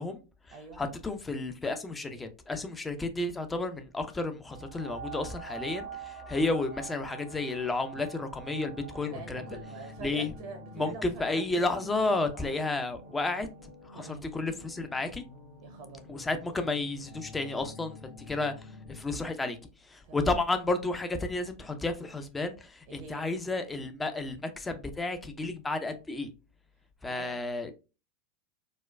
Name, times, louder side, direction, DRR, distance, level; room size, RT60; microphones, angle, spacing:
voice 1, 0.0-9.4 10.0-10.3 10.7-15.2 16.1-26.3 27.0-27.7, left 2 dB, 15° left, 0.6 m, -32 dB
sound 1, 4.5-13.7 14.4-14.5, right 7 dB, 30° left, 1.1 m, -46 dB
sound 2, 8.4-19.0, left 3 dB, 90° left, 1.7 m, -50 dB
voice 2, 9.1-11.7 12.3-12.5 13.9-14.3 15.6-16.1 20.0-20.3 22.9-23.3 27.0-27.4, right 4 dB, 55° right, 0.7 m, -45 dB
4.1 x 2.2 x 2.2 m
figure-of-eight pair, 85°, 0 cm